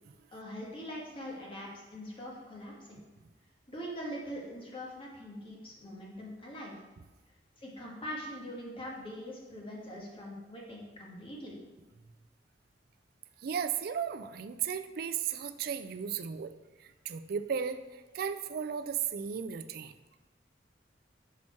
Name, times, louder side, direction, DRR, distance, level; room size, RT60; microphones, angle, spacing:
voice 1, 0.3-2.9 3.7-6.7 7.6-11.6, equal, 30° left, -3 dB, 1.4 m, -42 dB
voice 2, 13.4-16.5 16.8-19.9, right 7 dB, 55° right, 11 dB, 0.4 m, -35 dB
5.9 x 4.3 x 4.4 m, 1.2 s
head